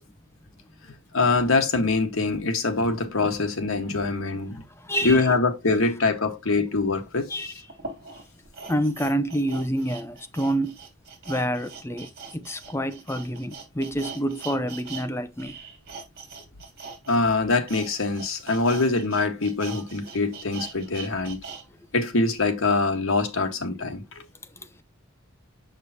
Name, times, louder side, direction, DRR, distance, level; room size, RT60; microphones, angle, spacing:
voice 1, 1.1-4.6 5.0-7.3 17.1-21.4 21.9-24.2, left 3 dB, 75° left, 1.5 m, -24 dB
voice 2, 4.8-5.2 7.3-7.5 8.7-10.8 11.3-15.6 19.7-19.8 24.6-24.7, equal, 10° left, 0.6 m, -28 dB
sound 1, 6.9-7.0 7.7-15.1 15.3-21.6 22.0-22.1, right 5 dB, 50° right, 2.8 m, -41 dB
6.8 x 6.6 x 2.8 m
head